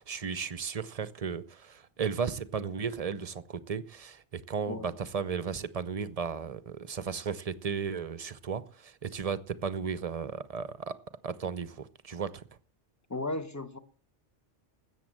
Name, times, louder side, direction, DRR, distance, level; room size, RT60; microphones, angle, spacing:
voice 1, 0.0-11.0 11.2-12.4, right 6 dB, 40° right, 0.6 m, -35 dB
voice 2, 13.1-13.8, left 2 dB, 15° left, 1.0 m, -35 dB
13.5 x 8.3 x 7.5 m
omnidirectional pair, 1.2 m